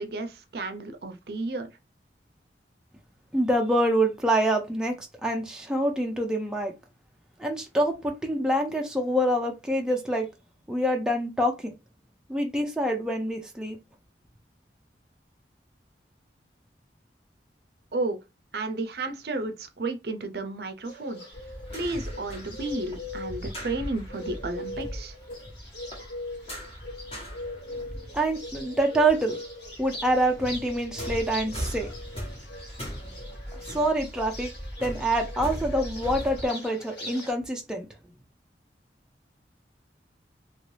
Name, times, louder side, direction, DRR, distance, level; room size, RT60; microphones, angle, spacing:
voice 1, 0.0-1.7 17.9-18.2 18.5-21.2 21.7-25.1, right 2 dB, 60° right, 0.5 m, -32 dB
voice 2, 3.3-6.7 7.4-10.3 10.7-11.7 12.3-13.8 28.1-29.4 29.8-31.9 33.5-34.5 34.8-37.9, right 1 dB, 5° right, 0.4 m, -26 dB
Bird, 20.8-37.3, left 1 dB, 70° left, 2.0 m, -41 dB
sound 1, 21.3-29.2 29.4-36.5, equal, 35° left, 1.2 m, -39 dB
2.9 x 2.6 x 3.2 m
head